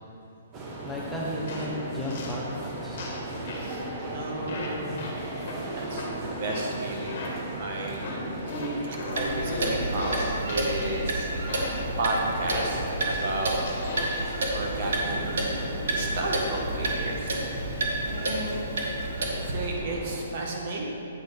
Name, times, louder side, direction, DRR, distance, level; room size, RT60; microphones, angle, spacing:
sound 1, 0.5-20.2, right 2 dB, 20° right, 0.9 m, -37 dB
voice 1, 0.9-3.0, left 1 dB, ahead, -7 dB, 0.6 m, -34 dB
sound 2, 1.5-1.7 2.0-2.4 3.0-3.2 3.5-3.7 4.5-4.7 5.0-5.1 5.5-5.6 6.0-6.1 6.5-6.7 7.0-7.3 8.0-8.2 8.5-10.9 11.5-11.8 12.5-14.3, left 2 dB, 50° left, 1.4 m, -36 dB
voice 2, 3.5-5.0 5.6-8.6 8.8-11.6 12.0-13.6 14.5-15.6 15.9-17.3 18.1-18.6 19.2-20.9, right 2 dB, 45° right, -1 dB, 1.2 m, -33 dB
Clock, 9.1-19.7, right 1 dB, 75° right, 1.2 m, -30 dB
8.3 x 4.1 x 5.1 m, 2.8 s
hypercardioid pair, 160°, 0 cm